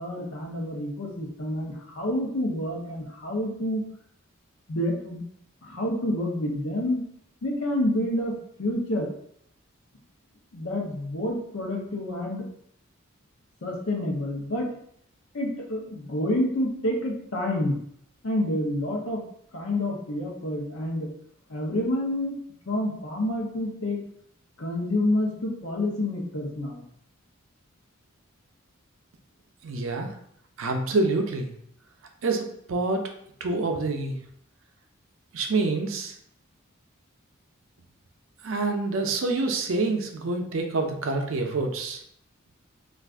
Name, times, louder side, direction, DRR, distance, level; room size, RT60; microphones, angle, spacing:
voice 1, 0.0-3.8 4.7-5.2 5.6-7.0 7.4-9.1 10.5-12.4 13.6-14.7 15.3-17.8 18.2-19.2 19.5-21.1 21.5-22.4 22.7-24.0 24.6-26.8, left 1 dB, 80° left, 0 dB, 0.7 m, -28 dB
voice 2, 29.6-30.1 30.6-31.5 32.2-33.0 33.4-34.2 35.3-36.1 38.4-42.0, right 3 dB, 70° right, 4 dB, 0.5 m, -27 dB
2.4 x 2.4 x 3.4 m, 0.69 s
head